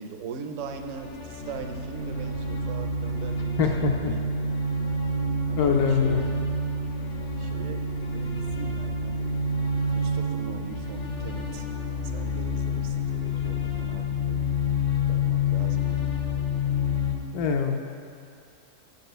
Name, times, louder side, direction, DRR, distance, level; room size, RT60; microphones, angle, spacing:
voice 1, 0.0-4.4 5.5-6.3 7.4-9.4 9.7-11.7 12.1-14.6 15.0-16.1, right 5 dB, 65° right, 6 dB, 0.8 m, -40 dB
sound 1, 0.6-17.1, left 2 dB, 50° left, 0.5 m, -28 dB
voice 2, 3.6-4.1 5.6-6.2 17.3-17.8, left 6 dB, 75° left, 2 dB, 1.0 m, -23 dB
7.3 x 4.1 x 6.6 m, 2.5 s
omnidirectional pair, 1.6 m